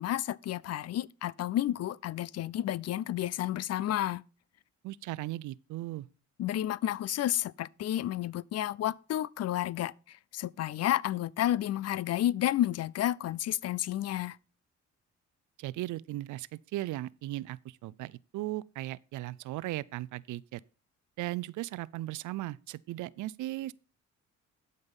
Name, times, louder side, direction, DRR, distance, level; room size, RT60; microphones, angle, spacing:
voice 1, 0.0-4.2 6.4-9.9 10.3-14.4, left 13 dB, 55° left, 0.5 m, -31 dB
voice 2, 4.8-6.1 15.6-20.6 21.2-23.7, right 16 dB, 75° right, 0.5 m, -37 dB
12.0 x 5.4 x 5.5 m
cardioid pair, 90°, 30 cm